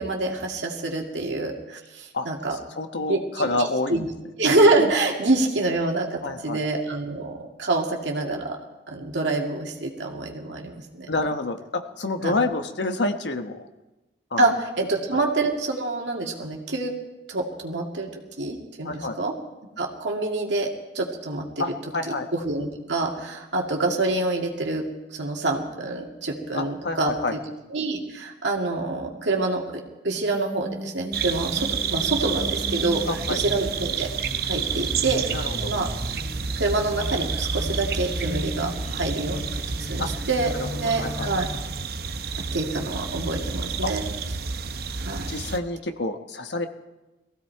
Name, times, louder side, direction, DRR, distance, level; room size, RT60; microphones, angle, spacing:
voice 1, 0.0-2.6 3.1-4.1 4.4-8.6 8.9-11.1 12.2-12.4 14.4-16.9 17.3-19.3 19.8-21.6 22.3-24.9 25.2-27.4 27.7-33.0 33.3-34.1 34.4-35.3 35.6-35.9 36.6-39.4 39.9-41.5 42.3-44.0 45.0-45.3, right 2 dB, 90° right, 1 dB, 2.2 m, -26 dB
voice 2, 2.1-4.0 4.8-4.9 6.2-6.6 11.1-11.6 12.0-13.6 14.3-14.5 18.8-19.2 21.6-22.3 26.5-27.3 33.1-33.4 35.3-35.7 40.0-40.1 40.5-41.3 43.8-43.9 45.3-46.7, left 2 dB, 80° left, 7 dB, 1.1 m, -28 dB
sound 1, 30.3-41.6, equal, 5° right, 3.0 m, -38 dB
sound 2, 31.1-45.6, right 5 dB, 55° right, 0.8 m, -29 dB
19.5 x 15.5 x 4.6 m, 1.0 s
head